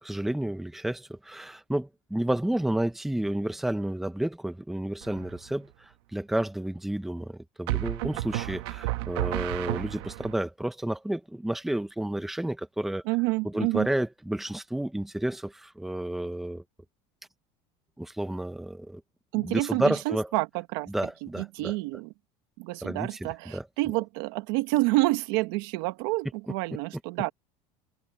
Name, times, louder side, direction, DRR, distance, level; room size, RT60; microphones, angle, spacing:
voice 1, 0.0-13.0 13.4-16.6 18.0-19.0 19.3-20.3 20.9-21.7 22.8-23.6, right 1 dB, ahead, 1.0 m, -31 dB
sound 1, 5.0-5.5 7.7-10.3, right 18 dB, 85° right, 1.7 m, -32 dB
voice 2, 13.0-13.9 19.3-20.9 21.2-22.1 22.6-27.3, right 22 dB, 65° right, 1.5 m, -28 dB
cardioid pair, 180°, 13 cm